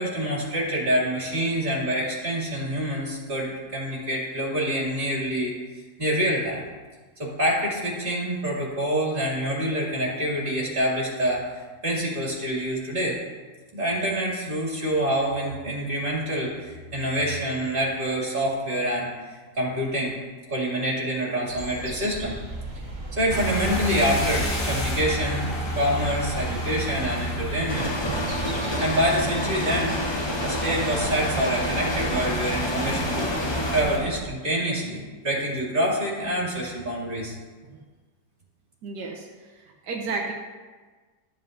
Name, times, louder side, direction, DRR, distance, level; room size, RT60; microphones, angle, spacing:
voice 1, 0.0-5.5 6.0-6.6 7.2-11.4 11.8-13.2 13.7-20.1 20.5-22.3 23.1-27.9 28.8-33.3 33.7-37.4, equal, 30° right, -5 dB, 2.7 m, -26 dB
sound 1, 21.5-34.2, right 2 dB, 55° right, 1.4 m, -38 dB
sound 2, 23.3-34.0, equal, 70° left, 2.2 m, -31 dB
sound 3, 27.7-33.8, left 1 dB, 30° left, 0.4 m, -30 dB
voice 2, 38.8-39.3 39.5-40.3, right 3 dB, 80° right, 0 dB, 1.4 m, -32 dB
13.0 x 7.6 x 2.7 m, 1.4 s
omnidirectional pair, 1.8 m